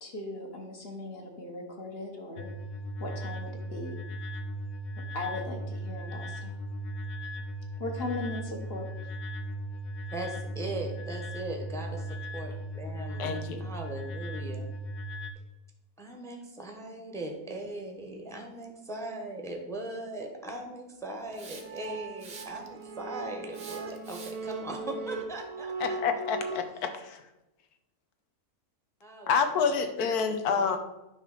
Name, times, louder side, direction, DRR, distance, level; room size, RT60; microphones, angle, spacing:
voice 1, 0.0-2.5 3.0-3.9 5.1-6.5 7.8-8.9, left 2 dB, 45° left, 1 dB, 1.4 m, -38 dB
sound 1, 2.4-15.3, equal, 65° left, 1.0 m, -37 dB
voice 2, 10.1-14.7 16.0-26.0 29.0-30.2 30.5-30.8, right 2 dB, ahead, 2 dB, 0.9 m, -39 dB
voice 3, 13.2-13.7 25.8-27.2 29.3-30.8, left 6 dB, 90° left, 7 dB, 1.4 m, -28 dB
Hiss, 21.3-21.8 22.2-22.8 23.5-24.5, right 4 dB, 35° right, 1.0 m, -46 dB
sound 2, 21.3-26.6, right 3 dB, 80° right, 1.5 m, -39 dB
9.4 x 3.3 x 6.5 m, 0.97 s
omnidirectional pair, 1.6 m